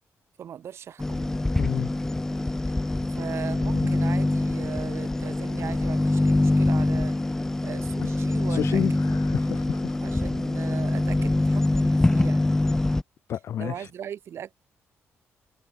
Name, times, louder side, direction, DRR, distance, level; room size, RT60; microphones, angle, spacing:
voice 1, 0.4-1.3 3.1-7.4 7.6-9.2 10.0-12.5 13.6-14.5, right 9 dB, 60° right, 2.4 m, -39 dB
sound 1, 1.0-13.0, left 2 dB, 10° left, 0.3 m, -24 dB
voice 2, 1.6-1.9 3.8-4.0 8.0-8.1 8.5-10.0 13.3-13.9, left 10 dB, 60° left, 0.5 m, -30 dB
cardioid pair, 135°, 5 cm